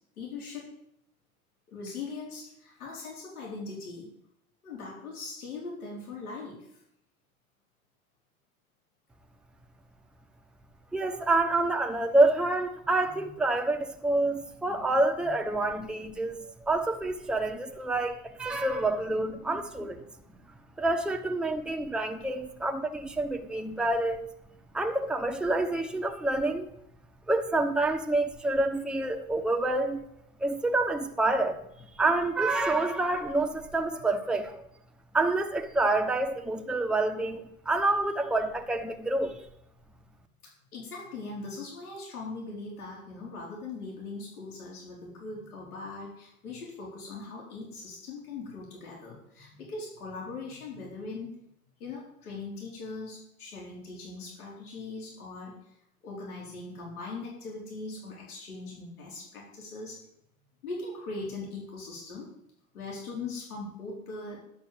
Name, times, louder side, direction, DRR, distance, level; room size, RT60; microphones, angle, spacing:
voice 1, 0.2-0.7 1.7-4.1 4.6-6.8 14.7-14.9 40.7-51.4 51.8-55.6 56.0-60.0 60.6-62.3 62.7-64.4, left 3 dB, 80° left, 4.5 m, -40 dB
voice 2, 10.9-20.0 20.8-24.2 24.7-26.7 27.3-30.0 30.4-31.6 32.0-34.6 35.1-39.4, right 2 dB, ahead, 1.0 m, -27 dB
11.0 x 7.3 x 6.8 m
hypercardioid pair, 90°, 44 cm